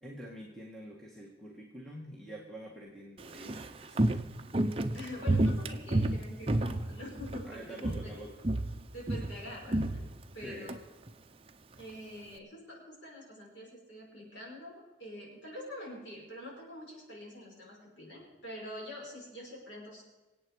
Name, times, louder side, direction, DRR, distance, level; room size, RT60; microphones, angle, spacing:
voice 1, 0.0-4.1 7.4-8.4 10.4-10.7, right 1 dB, 5° left, -3 dB, 1.7 m, -46 dB
Walk footsteps, 3.2-7.5 7.8-8.2 8.4-10.8 11.1-11.2, right 1 dB, 30° right, 0.7 m, -30 dB
voice 2, 4.9-7.8 8.0-8.1 8.9-10.1 10.3-10.8 11.7-20.0, left 1 dB, 75° left, -3 dB, 5.7 m, -45 dB
25.5 x 8.6 x 4.9 m, 1.1 s
head